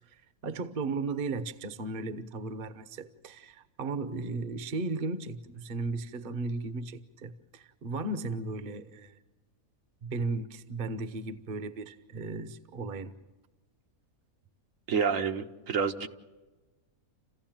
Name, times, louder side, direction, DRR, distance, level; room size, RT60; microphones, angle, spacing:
voice 1, 0.4-9.2 10.0-13.1, right 3 dB, 45° right, 1.0 m, -35 dB
voice 2, 14.9-16.1, right 6 dB, 65° right, 1.3 m, -28 dB
29.0 x 15.5 x 8.9 m
omnidirectional pair, 1.5 m